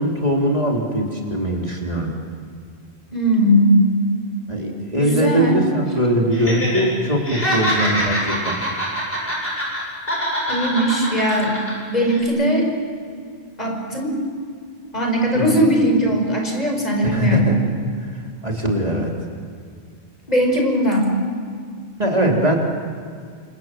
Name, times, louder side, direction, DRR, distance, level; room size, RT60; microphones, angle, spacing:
voice 1, 0.0-2.1 4.5-8.6 15.3-15.7 17.0-17.6 17.9-19.1 22.0-22.6, right 1 dB, 35° right, -1 dB, 3.5 m, -21 dB
voice 2, 3.1-3.9 5.0-5.6 10.5-11.6 11.9-12.7 13.6-14.1 14.9-17.5 20.3-21.2, equal, 40° left, 1 dB, 5.2 m, -19 dB
Laughter, 6.3-6.8 7.1-9.8 10.1-11.7 12.1-12.2, equal, 65° left, 8.5 m, -24 dB
29.5 x 26.5 x 7.7 m, 2.1 s
omnidirectional pair, 1.1 m